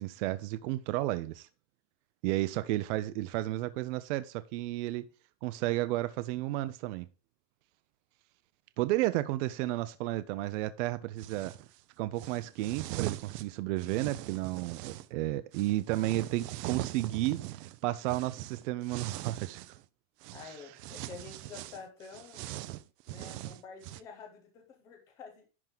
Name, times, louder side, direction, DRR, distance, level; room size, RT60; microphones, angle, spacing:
voice 1, 0.0-1.5 2.2-5.1 5.4-7.1 8.8-11.5 12.0-19.6 20.4-20.5, right 16 dB, 50° right, 0.6 m, -32 dB
sound 1, 11.2-11.7 12.2-15.1 15.5-19.8 20.2-20.5 20.8-24.0, right 15 dB, 80° right, 0.7 m, -41 dB
voice 2, 20.3-22.4 23.1-25.5, left 5 dB, 10° left, 0.3 m, -49 dB
11.0 x 3.7 x 5.9 m
supercardioid pair, 180°, 48 cm